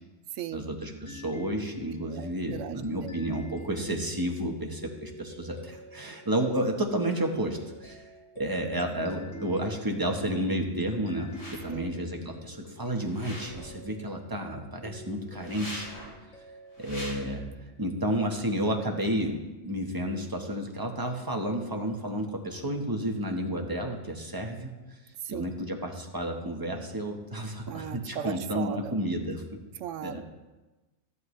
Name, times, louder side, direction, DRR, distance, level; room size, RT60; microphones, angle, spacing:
voice 1, 0.5-8.0 8.4-11.3 11.6-15.9 16.8-17.4 17.8-24.7 25.3-29.4 30.0-30.2, right 1 dB, 20° right, 2 dB, 1.1 m, -31 dB
sound 1, 0.8-18.0, equal, 80° left, 2.2 m, -48 dB
voice 2, 2.0-3.1 8.6-9.0 11.7-11.9 25.2-25.5 27.7-29.0 29.7-30.2, right 10 dB, 80° right, 12 dB, 0.9 m, -38 dB
sound 2, 11.3-11.8 13.0-13.8 15.3-16.2 16.7-17.1, left 1 dB, 55° left, 4.2 m, -42 dB
13.0 x 11.0 x 3.2 m, 1.1 s
omnidirectional pair, 1.3 m